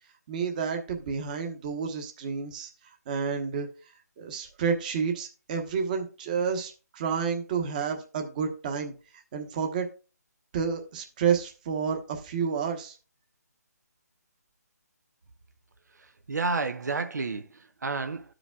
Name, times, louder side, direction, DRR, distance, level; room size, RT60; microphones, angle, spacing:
voice 1, 0.3-2.7 3.1-3.7 4.2-8.9 9.3-9.9 10.5-13.0, right 6 dB, 30° right, 1.0 m, -30 dB
voice 2, 16.3-18.3, right 3 dB, 80° right, 0.7 m, -30 dB
14.5 x 5.0 x 2.3 m
hypercardioid pair, 160°, 9 cm